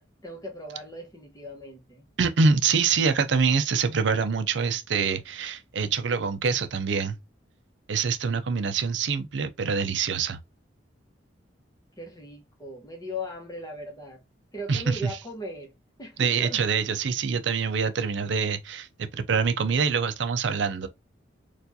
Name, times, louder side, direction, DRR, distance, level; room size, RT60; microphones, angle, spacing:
voice 1, 0.0-2.1 12.0-14.2 14.5-15.7 16.0-16.6, left 1 dB, 20° left, 1.1 m, -38 dB
voice 2, 2.2-7.2 7.9-10.4 14.7-15.2 16.2-20.9, right 5 dB, 70° right, 0.5 m, -25 dB
4.4 x 2.5 x 2.7 m
head